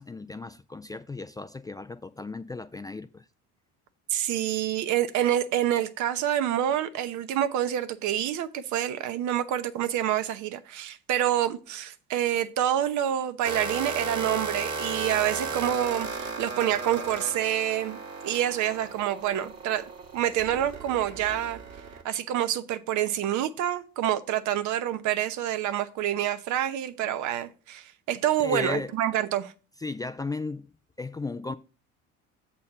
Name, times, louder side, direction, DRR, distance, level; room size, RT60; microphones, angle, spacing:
voice 1, 0.0-3.2 28.4-28.9 29.8-30.7 31.0-31.5, left 3 dB, 10° left, 0.3 m, -35 dB
voice 2, 4.1-18.0 18.2-19.8 20.1-21.6 22.0-29.5, right 11 dB, 65° right, 0.9 m, -27 dB
sound 1, 13.4-22.0, right 4 dB, 50° right, 1.8 m, -35 dB
7.2 x 4.3 x 6.6 m
cardioid pair, 105°, 31 cm